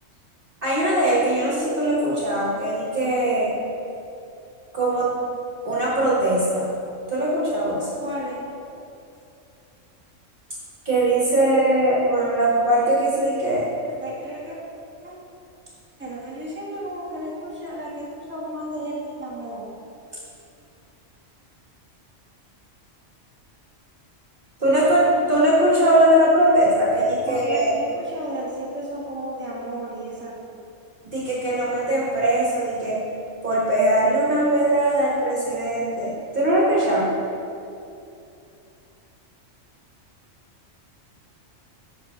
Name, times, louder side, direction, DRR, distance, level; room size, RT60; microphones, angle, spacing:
voice 1, 0.6-3.5 4.7-5.1 5.7-6.7 7.1-8.0 10.9-13.7 24.6-27.8 31.0-33.0 33.4-37.1, right 1 dB, 45° right, -6 dB, 1.7 m, -20 dB
voice 2, 8.0-8.5 14.0-14.6 15.0-15.1 16.0-19.7 27.3-30.6, right 1 dB, 10° right, -7 dB, 1.7 m, -33 dB
10.0 x 4.5 x 5.4 m, 2.7 s
omnidirectional pair, 1.3 m